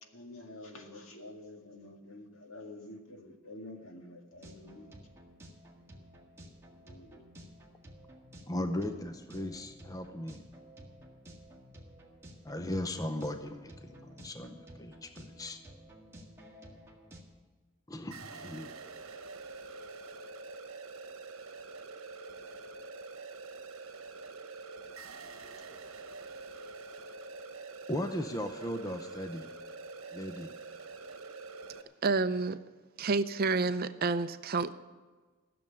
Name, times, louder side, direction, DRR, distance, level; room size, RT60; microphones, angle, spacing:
voice 1, 0.1-4.9 6.8-7.2, left 2 dB, 70° left, 2.0 m, -48 dB
sound 1, 4.3-17.2, equal, 10° right, 1.8 m, -53 dB
voice 2, 8.5-10.4 12.4-15.6 17.9-18.7 27.9-29.5 30.1-30.5, left 1 dB, 15° left, 0.6 m, -37 dB
sound 2, 18.1-31.8, right 4 dB, 75° right, 1.1 m, -46 dB
voice 3, 32.0-32.6 33.0-34.7, right 3 dB, 45° right, 0.5 m, -29 dB
15.0 x 6.9 x 9.8 m
head